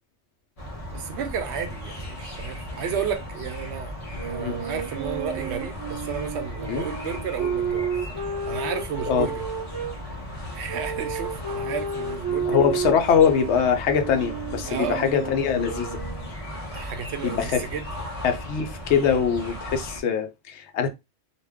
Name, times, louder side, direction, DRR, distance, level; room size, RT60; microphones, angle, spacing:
sound 1, 0.6-20.0, equal, 35° left, 0.9 m, -36 dB
voice 1, 0.9-7.9 8.5-9.4 10.5-12.8 14.6-15.0 16.7-17.8, right 7 dB, 75° right, 0.8 m, -32 dB
sound 2, 4.1-9.9 10.7-16.3, right 5 dB, 40° right, 0.3 m, -32 dB
voice 2, 12.5-16.0 17.2-17.6 18.2-20.9, left 7 dB, 75° left, 0.9 m, -23 dB
2.5 x 2.2 x 3.4 m
omnidirectional pair, 1.2 m